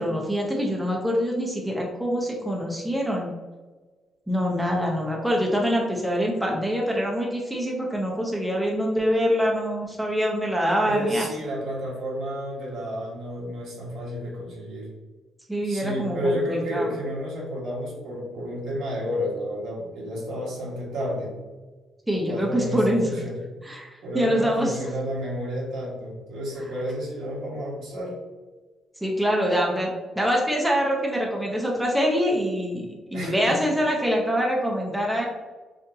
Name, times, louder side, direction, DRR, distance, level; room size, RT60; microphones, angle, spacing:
voice 1, 0.0-3.3 4.3-11.3 15.5-16.4 16.7-16.9 22.1-23.2 23.6-24.8 26.6-26.7 29.0-35.3, equal, 5° right, -1 dB, 0.7 m, -25 dB
voice 2, 10.8-14.9 15.6-21.4 22.1-23.4 24.0-28.2 33.1-33.7, equal, 80° right, -5 dB, 1.4 m, -31 dB
3.8 x 2.5 x 2.7 m, 1.3 s
cardioid pair, 90°, 0 cm